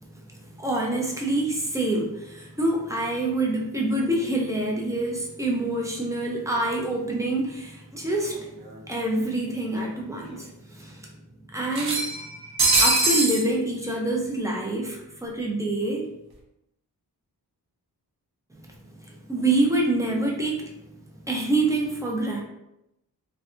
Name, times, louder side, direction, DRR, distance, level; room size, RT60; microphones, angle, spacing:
voice 1, 0.0-11.1 11.5-12.4 12.8-16.1 18.5-22.4, right 2 dB, 10° right, -2 dB, 0.5 m, -27 dB
sound 1, 8.3-8.4 8.7-8.8 9.9-10.0 10.3-10.4 11.7-13.4, right 2 dB, 70° right, 0.6 m, -22 dB
2.6 x 2.2 x 2.5 m, 0.87 s
wide cardioid pair, 85°, 39 cm